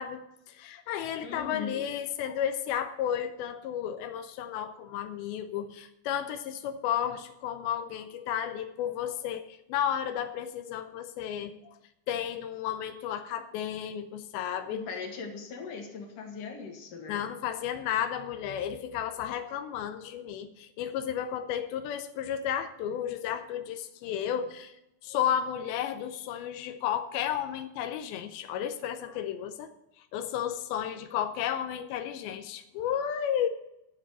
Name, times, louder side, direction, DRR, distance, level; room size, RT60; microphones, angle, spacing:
voice 1, 0.0-11.7 12.1-14.8 17.1-24.8 25.0-29.7 30.1-33.5, left 9 dB, 85° left, 8 dB, 2.1 m, -33 dB
voice 2, 1.2-1.8 14.7-17.2, left 5 dB, 55° left, 3 dB, 3.0 m, -39 dB
11.0 x 7.4 x 6.8 m, 0.87 s
omnidirectional pair, 5.3 m